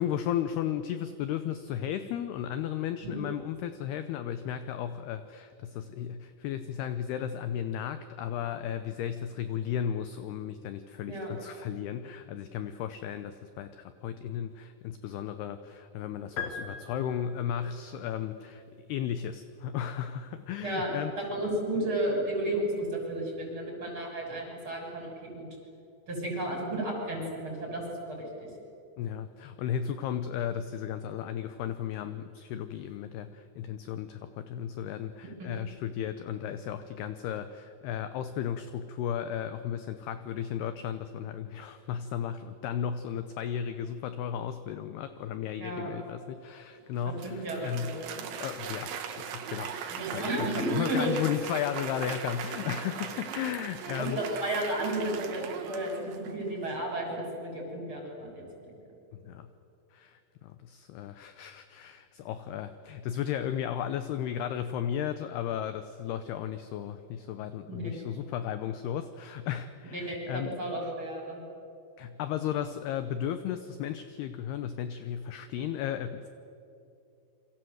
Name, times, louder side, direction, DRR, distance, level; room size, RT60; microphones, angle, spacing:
voice 1, 0.0-18.6 18.9-21.3 29.0-48.1 48.4-54.2 59.1-59.5 59.9-70.5 72.0-76.3, left 9 dB, 75° left, 10 dB, 2.5 m, -35 dB
sound 1, 16.4-17.7, left 5 dB, 55° left, 3.5 m, -39 dB
voice 2, 21.2-25.5 26.1-28.5 35.4-35.5 45.6-45.9 47.2-48.2 49.9-51.1 54.0-58.7 67.7-68.0 70.1-71.4, right 1 dB, 25° right, 0 dB, 6.8 m, -33 dB
Applause, 46.9-56.5, right 7 dB, 70° right, 4.1 m, -39 dB
28.0 x 24.5 x 7.9 m, 2.8 s
omnidirectional pair, 5.4 m